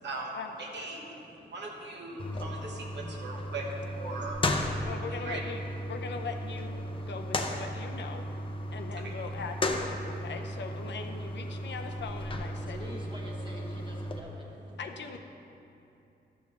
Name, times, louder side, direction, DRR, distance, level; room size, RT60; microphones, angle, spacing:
voice 1, 0.0-5.4 6.9-7.1 8.7-9.2 10.2-10.3 11.5-11.6, right 2 dB, 75° right, -1 dB, 1.2 m, -40 dB
sound 1, 2.2-14.2, left 1 dB, 30° left, 0.5 m, -35 dB
voice 2, 4.8-5.6 5.9-8.2 8.7-12.8 14.8-15.2, left 5 dB, 80° left, 5 dB, 0.6 m, -40 dB
voice 3, 12.6-14.5, equal, 25° right, -3 dB, 0.9 m, -45 dB
12.5 x 7.0 x 3.2 m, 2.8 s
wide cardioid pair, 160°, 18 cm